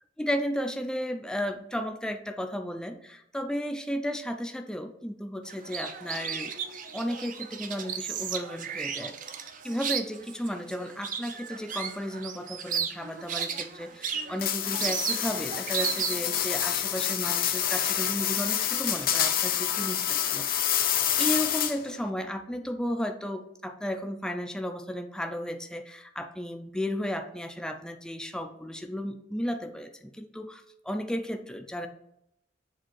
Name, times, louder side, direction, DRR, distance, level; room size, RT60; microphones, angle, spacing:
voice 1, 0.2-6.6 6.9-9.2 9.6-20.5 21.2-31.9, equal, 5° left, 5 dB, 0.4 m, -34 dB
sound 1, 5.5-16.4, right 7 dB, 45° right, 0.6 m, -34 dB
sound 2, 14.4-22.0, left 10 dB, 50° left, 0.6 m, -28 dB
7.4 x 2.8 x 5.8 m, 0.77 s
head